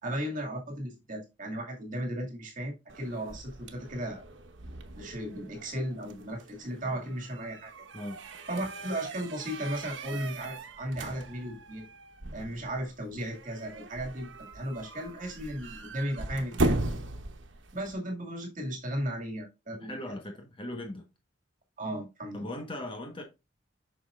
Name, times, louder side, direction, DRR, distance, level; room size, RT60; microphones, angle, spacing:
voice 1, 0.0-4.3 5.0-7.8 8.5-11.9 12.3-16.9 17.7-20.2 21.8-22.5, right 1 dB, 45° right, 2.3 m, -36 dB
sound 1, 2.9-17.9, right 2 dB, 90° right, 1.1 m, -38 dB
voice 2, 19.7-21.1 22.3-23.2, left 1 dB, 30° left, 1.4 m, -39 dB
7.8 x 6.0 x 2.5 m
head